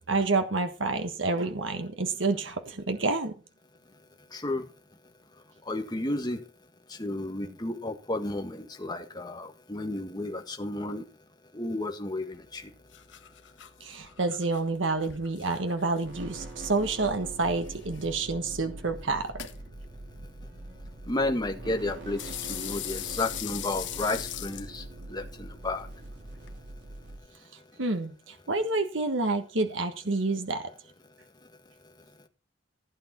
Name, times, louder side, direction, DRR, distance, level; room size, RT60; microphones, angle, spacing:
voice 1, 0.1-3.3 13.8-19.3 27.8-30.7, right 3 dB, 90° right, 7 dB, 1.4 m, -28 dB
voice 2, 4.3-4.6 5.7-6.4 7.0-11.1 11.5-12.6 21.1-25.9, left 2 dB, 20° left, 4 dB, 1.7 m, -32 dB
sound 1, 12.3-26.6, left 12 dB, 75° left, 1.2 m, -43 dB
sound 2, 16.0-27.2, right 2 dB, 70° right, 3.9 m, -43 dB
15.5 x 8.7 x 4.3 m, 0.34 s
head